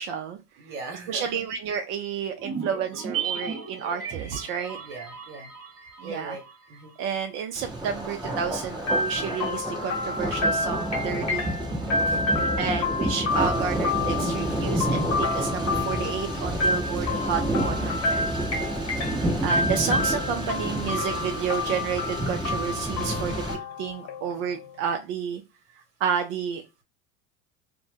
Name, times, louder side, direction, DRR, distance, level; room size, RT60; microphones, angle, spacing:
voice 1, 0.0-0.4 1.1-4.8 6.0-6.4 7.0-11.5 12.6-18.3 19.4-23.4 23.8-25.4 26.0-26.6, right 7 dB, 45° right, 5 dB, 0.4 m, -30 dB
voice 2, 0.6-1.4 4.8-5.5 6.0-6.9 12.0-12.4 16.9-17.2, right 3 dB, 65° right, 3 dB, 1.0 m, -40 dB
sound 1, 2.4-6.9 7.1-7.2, right 7 dB, 30° right, 1.0 m, -35 dB
Thunder, 7.5-23.5, right 1 dB, 10° right, 0.7 m, -30 dB
sound 2, 8.9-24.7, left 3 dB, 35° left, 0.9 m, -29 dB
2.0 x 2.0 x 3.3 m, 0.26 s
hypercardioid pair, 85°, 46 cm